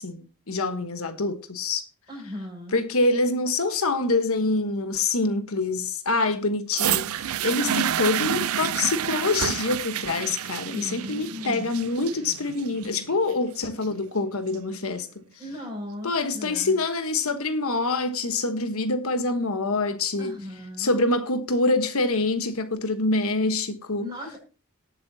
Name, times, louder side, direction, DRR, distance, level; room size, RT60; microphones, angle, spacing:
voice 1, 0.0-1.8 2.7-15.2 16.0-20.4 20.8-24.1, left 3 dB, 70° left, 1.3 m, -25 dB
voice 2, 2.1-2.9 7.6-8.1 10.6-11.7 15.4-16.8 20.2-20.9 24.0-24.4, left 1 dB, 20° right, 6.6 m, -37 dB
sound 1, 6.7-14.7 15.5-15.6, right 10 dB, 70° right, 0.5 m, -29 dB
19.0 x 7.8 x 2.8 m
head